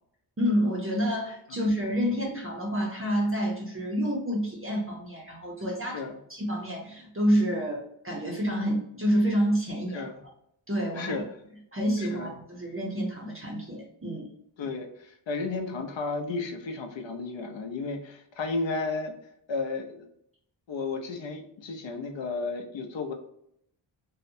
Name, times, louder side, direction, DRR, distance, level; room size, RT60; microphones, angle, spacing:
voice 1, 0.4-6.0 6.3-10.1 10.7-11.2 11.7-14.3, equal, 30° right, -1 dB, 0.5 m, -28 dB
voice 2, 12.0-12.3 14.1-14.2 14.6-19.1 19.5-20.1 20.7-23.1, left 3 dB, 65° left, 5 dB, 0.6 m, -33 dB
2.7 x 2.1 x 2.5 m, 0.72 s
wide cardioid pair, 110°, 49 cm